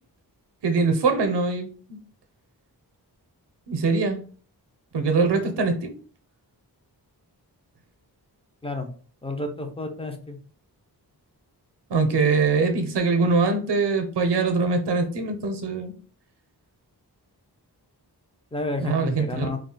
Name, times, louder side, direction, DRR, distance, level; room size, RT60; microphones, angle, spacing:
voice 1, 0.6-2.0 3.7-4.2 4.9-5.9 11.9-15.9 18.8-19.5, right 4 dB, 85° right, 6 dB, 0.6 m, -23 dB
voice 2, 9.2-10.4 18.5-19.6, left 2 dB, 15° left, 4 dB, 0.4 m, -31 dB
2.3 x 2.0 x 3.7 m, 0.41 s
wide cardioid pair, 110°, 40 cm